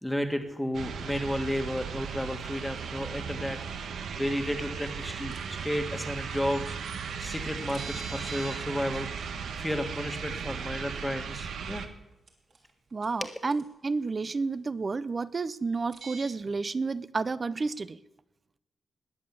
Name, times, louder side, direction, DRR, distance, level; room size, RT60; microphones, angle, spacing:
voice 1, 0.0-3.6 4.1-6.8 7.2-9.1 9.6-11.9 13.2-13.3, equal, 5° left, 5 dB, 1.5 m, -32 dB
sound 1, 0.7-11.9, right 6 dB, 80° right, 1.3 m, -37 dB
sound 2, 5.3-5.6 7.0-7.1 7.7-8.6 8.9-9.0 10.9-11.0 12.3-12.7 13.0-13.1 13.5-13.6 15.9-16.3, right 4 dB, 55° right, 3.3 m, -42 dB
voice 2, 12.9-18.0, right 4 dB, 30° right, 16 dB, 0.5 m, -31 dB
20.5 x 7.5 x 8.4 m, 0.98 s
wide cardioid pair, 135°, 0 cm